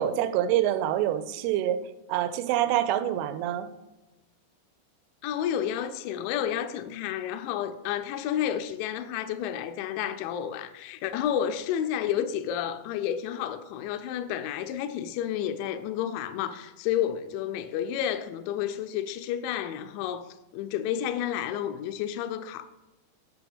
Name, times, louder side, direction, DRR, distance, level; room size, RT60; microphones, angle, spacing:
voice 1, 0.0-1.8 2.1-3.7, right 11 dB, 90° right, 3.1 m, -26 dB
voice 2, 5.2-20.3 20.5-22.7, left 10 dB, 85° left, 2.7 m, -31 dB
8.4 x 6.0 x 3.5 m
omnidirectional pair, 5.5 m